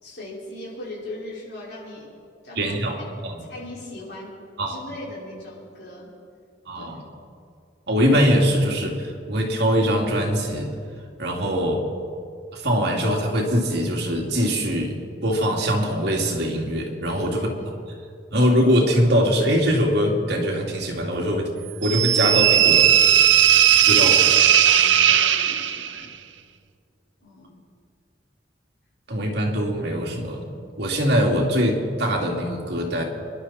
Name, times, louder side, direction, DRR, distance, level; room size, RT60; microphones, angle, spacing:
voice 1, 0.0-2.1 2.4-3.2 3.5-6.1 6.7-7.0 17.2-17.7 23.8-24.1 24.6-26.0 27.2-27.6, left 2 dB, 65° left, -6 dB, 5.2 m, -39 dB
voice 2, 2.6-3.4 4.6-4.8 6.7-7.0 7.9-10.7 11.2-11.9 12.5-14.9 15.2-17.5 18.3-21.5 21.8-22.9 23.8-24.1 26.0-26.1 29.1-30.5 30.8-33.0, equal, 65° right, 0 dB, 2.6 m, -22 dB
sound 1, 21.8-26.0, right 10 dB, 85° right, 0.7 m, -17 dB
27.0 x 11.5 x 4.3 m, 2.3 s
head